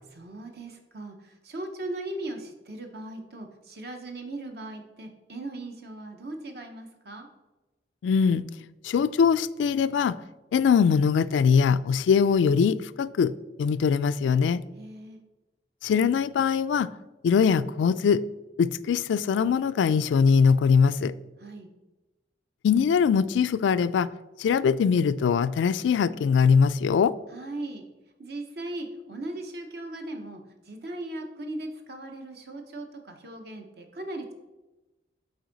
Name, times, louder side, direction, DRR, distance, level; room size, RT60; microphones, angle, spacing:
voice 1, 0.1-7.3 14.7-15.2 21.4-21.7 27.3-27.9 28.2-34.3, right 2 dB, 60° right, 0.8 m, -38 dB
voice 2, 8.0-8.4 8.8-10.2 10.5-13.3 13.6-14.6 15.8-16.9 17.2-18.2 18.6-21.1 22.6-24.1 24.4-27.1, left 6 dB, 85° left, 0.3 m, -22 dB
7.9 x 4.4 x 3.9 m
head